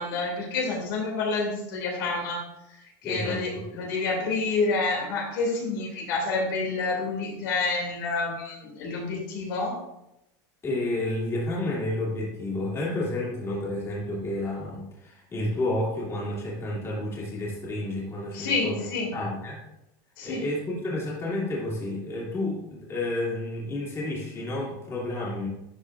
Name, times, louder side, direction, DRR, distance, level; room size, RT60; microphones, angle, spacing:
voice 1, 0.0-2.4 2.7-9.7 18.3-19.1 20.2-20.4, left 3 dB, 80° left, -1 dB, 2.5 m, -28 dB
voice 2, 3.0-3.7 10.6-18.9 19.1-19.6 20.2-25.5, left 1 dB, 25° left, -4 dB, 2.5 m, -30 dB
11.5 x 4.9 x 2.5 m, 0.86 s
supercardioid pair, 130°, 11 cm